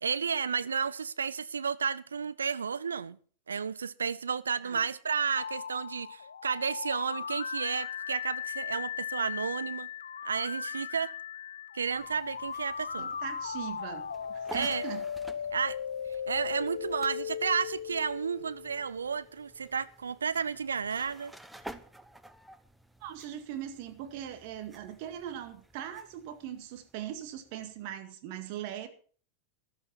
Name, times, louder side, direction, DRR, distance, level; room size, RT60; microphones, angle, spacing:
voice 1, 0.0-3.2 3.5-9.9 10.2-11.1 11.7-13.1 14.5-14.8 15.5-15.8 16.3-21.3, right 6 dB, 70° right, 0.6 m, -32 dB
sound 1, 5.4-19.2, left 7 dB, 70° left, 0.6 m, -38 dB
sound 2, 11.9-27.9, right 1 dB, 5° right, 0.9 m, -52 dB
voice 2, 13.0-15.0 23.0-28.9, right 10 dB, 45° right, 1.9 m, -40 dB
14.5 x 12.0 x 4.5 m
figure-of-eight pair, 90°, 0 cm